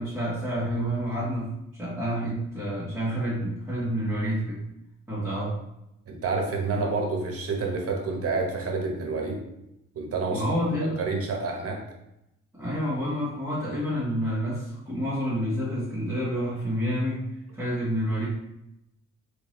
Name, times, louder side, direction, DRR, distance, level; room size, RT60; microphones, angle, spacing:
voice 1, 0.0-4.6 5.1-5.6 10.3-11.0 12.5-17.2 17.5-18.3, equal, 5° right, -10 dB, 1.4 m, -29 dB
voice 2, 6.1-9.4 9.9-10.4 10.8-11.8, right 3 dB, 50° right, 1 dB, 1.0 m, -28 dB
3.5 x 3.1 x 3.1 m, 0.85 s
cardioid pair, 90°, 30 cm